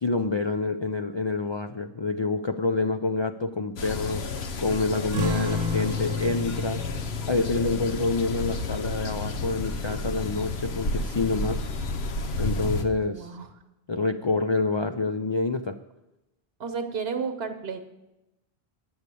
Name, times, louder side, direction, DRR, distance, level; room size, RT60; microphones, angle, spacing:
voice 1, 0.0-6.8 7.3-11.7 12.4-13.3 13.9-15.8, left 3 dB, 50° left, 7 dB, 0.3 m, -27 dB
sound 1, 3.8-12.9, left 2 dB, 80° left, 1.1 m, -32 dB
sound 2, 4.9-10.9, equal, 10° left, 0.9 m, -43 dB
sound 3, 5.1-10.1, left 3 dB, 50° right, 1.0 m, -33 dB
voice 2, 13.0-13.5 16.6-17.8, right 5 dB, 70° right, 7 dB, 1.2 m, -32 dB
9.3 x 7.1 x 8.3 m, 0.95 s
omnidirectional pair, 1.1 m